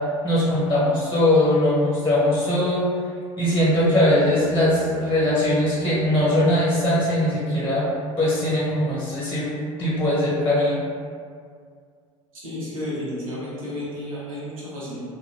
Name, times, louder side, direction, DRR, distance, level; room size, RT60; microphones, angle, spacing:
voice 1, 0.2-2.8 3.4-7.9 8.2-9.4 9.8-10.8, left 1 dB, 15° left, -7 dB, 0.9 m, -20 dB
Bowed string instrument, 4.1-7.3, equal, 80° left, 0.5 m, -39 dB
voice 2, 12.3-15.0, left 1 dB, 80° right, -7 dB, 0.9 m, -32 dB
2.6 x 2.3 x 3.0 m, 2.1 s
hypercardioid pair, 70°, 17 cm